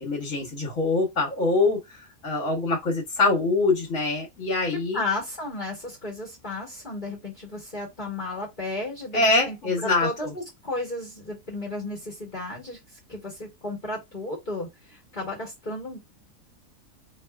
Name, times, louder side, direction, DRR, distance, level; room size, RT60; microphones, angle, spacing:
voice 1, 0.0-1.8 2.2-5.0 9.1-10.3, left 3 dB, 55° left, 1.5 m, -24 dB
voice 2, 4.9-12.8 13.1-16.0, left 2 dB, 35° left, 1.3 m, -33 dB
4.1 x 2.6 x 2.3 m
omnidirectional pair, 1.6 m